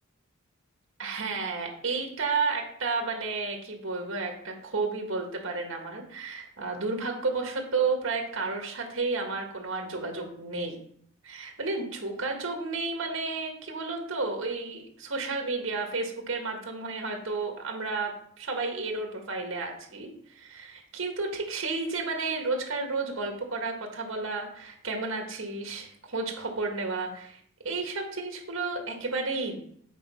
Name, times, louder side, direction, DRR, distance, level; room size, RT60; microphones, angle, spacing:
voice 1, 1.0-10.8 11.2-27.4 27.6-29.6, right 3 dB, 80° right, 3 dB, 1.6 m, -32 dB
8.5 x 4.0 x 5.7 m, 0.65 s
head